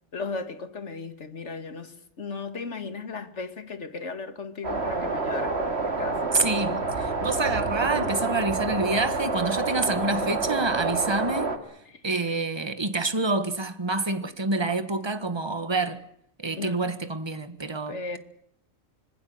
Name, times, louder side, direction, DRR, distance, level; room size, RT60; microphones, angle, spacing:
voice 1, 0.1-6.3 11.9-12.0 16.6-16.9 17.9-18.2, left 4 dB, 65° left, 2.2 m, -36 dB
sound 1, 4.6-11.6, right 3 dB, 55° right, 2.5 m, -28 dB
voice 2, 6.3-11.8 12.0-16.0 16.4-18.2, right 3 dB, 20° right, 1.6 m, -27 dB
25.5 x 20.5 x 8.0 m
omnidirectional pair, 1.3 m